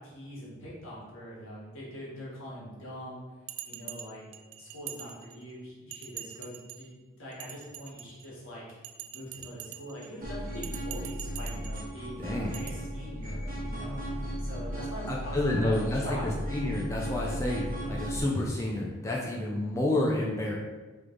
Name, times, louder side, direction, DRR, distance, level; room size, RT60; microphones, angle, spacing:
voice 1, 0.0-3.2 3.6-4.2 4.6-6.9 7.2-8.6 9.1-14.0 14.4-16.3, equal, 70° left, -6 dB, 1.5 m, -43 dB
Bell, 3.5-5.5 5.9-6.9 7.3-8.3 8.8-10.1 10.6-11.9 12.5-12.7, right 12 dB, 85° right, 0.3 m, -44 dB
sound 1, 10.2-18.2, equal, 40° right, 1.0 m, -36 dB
voice 2, 12.2-12.6 15.1-20.5, left 1 dB, 15° left, -3 dB, 0.4 m, -29 dB
3.3 x 3.2 x 3.8 m, 1.3 s
head